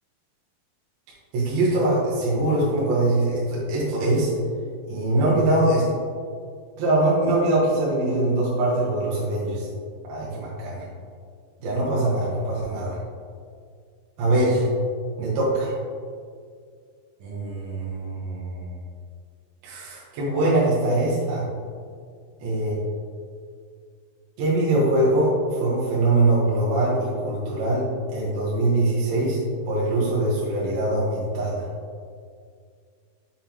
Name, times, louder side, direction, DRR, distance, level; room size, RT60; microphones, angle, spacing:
voice 1, 1.3-4.3 4.9-6.0 6.8-9.7 10.1-10.9 11.6-13.0 14.2-14.7 15.2-15.7 17.2-18.7 19.6-21.4 22.4-22.8 24.4-29.4 29.7-31.6, right 2 dB, 65° right, -7 dB, 2.6 m, -23 dB
7.1 x 5.5 x 3.0 m, 2.1 s
omnidirectional pair, 5.3 m